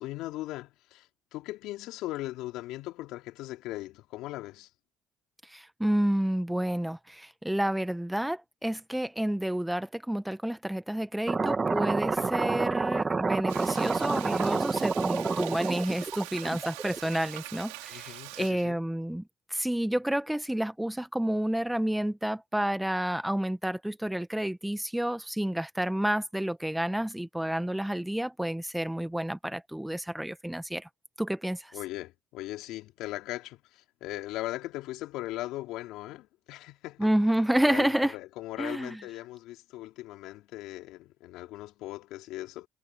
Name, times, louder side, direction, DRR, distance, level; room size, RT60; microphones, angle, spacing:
voice 1, 0.0-4.7 17.9-18.8 31.7-37.1 37.7-42.7, left 17 dB, 75° left, 3.3 m, -39 dB
voice 2, 5.5-19.2 19.5-30.9 31.2-31.7 37.0-38.1 38.6-39.0, right 1 dB, 5° right, 1.5 m, -30 dB
sound 1, 11.3-17.1, right 4 dB, 30° right, 1.9 m, -28 dB
Frying (food), 13.5-18.5, right 27 dB, 85° right, 4.4 m, -43 dB
hypercardioid pair, 60°, 0 cm